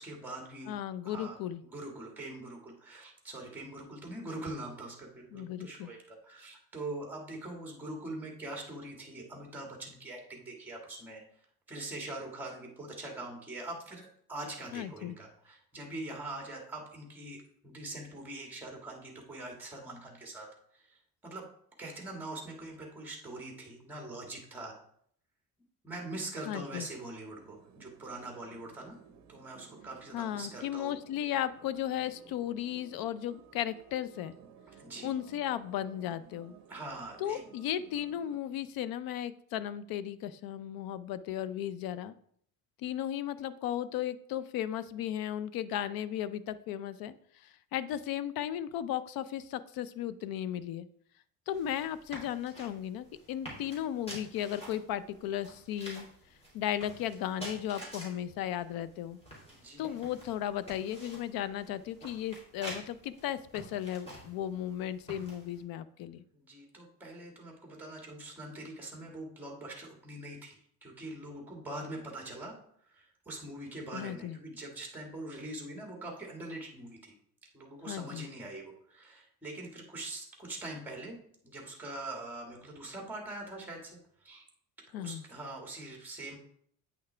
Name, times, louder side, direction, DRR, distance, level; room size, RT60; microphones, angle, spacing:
voice 1, 0.0-0.7 1.0-11.2 11.7-20.5 20.7-21.5 21.8-24.8 25.8-29.0 29.3-30.9 34.8-35.1 36.7-37.4 59.5-60.0 66.3-77.1 77.5-81.2 81.4-84.4 84.9-86.4, right 2 dB, 5° right, 0 dB, 1.7 m, -43 dB
voice 2, 0.7-1.6 5.3-5.9 14.7-15.1 26.5-26.9 30.1-34.3 35.0-36.5 37.2-42.1 42.8-47.1 47.4-50.9 51.5-56.1 56.5-59.2 59.8-66.2 73.9-74.4 77.9-78.3 84.9-85.2, left 11 dB, 70° left, 14 dB, 0.6 m, -35 dB
sound 1, 27.4-38.4, right 7 dB, 45° right, 0.8 m, -57 dB
sound 2, 51.5-65.6, right 1 dB, 15° left, 3.0 m, -49 dB
8.6 x 5.8 x 3.3 m, 0.65 s
cardioid pair, 145°, 37 cm